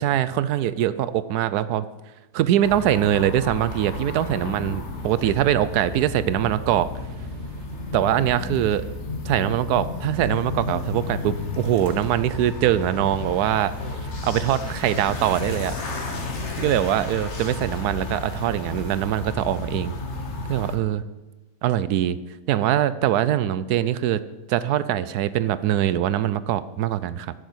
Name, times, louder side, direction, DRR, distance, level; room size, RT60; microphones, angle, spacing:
voice 1, 0.0-1.9 2.3-6.9 7.9-8.8 9.2-13.7 14.2-15.7 16.6-20.0 20.5-21.0 21.6-22.2 22.5-24.2 24.5-27.3, right 11 dB, 80° right, 15 dB, 1.1 m, -23 dB
sound 1, 2.6-20.8, left 2 dB, 50° left, 1.7 m, -32 dB
voice 2, 4.4-6.1 13.8-14.6 16.0-16.8, left 4 dB, 85° left, 6 dB, 1.9 m, -40 dB
10.5 x 7.1 x 7.8 m, 1.1 s
omnidirectional pair, 1.6 m